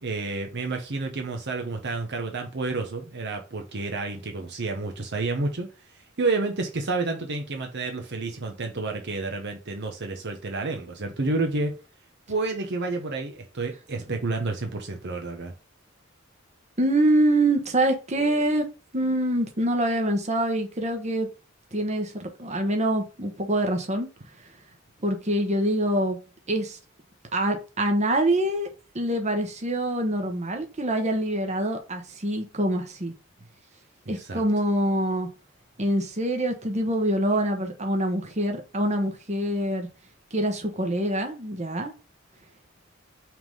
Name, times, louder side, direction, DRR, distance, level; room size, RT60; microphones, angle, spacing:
voice 1, 0.0-5.7 5.9-11.8 12.3-15.5 34.1-34.4, right 3 dB, 60° right, 1.0 m, -30 dB
voice 2, 16.8-18.7 18.9-21.3 21.7-24.1 25.0-26.2 26.5-26.8 27.3-28.7 28.9-33.1 34.1-35.3 35.8-39.9 40.3-41.9, right 1 dB, 35° right, 1.2 m, -25 dB
5.8 x 3.7 x 5.5 m
head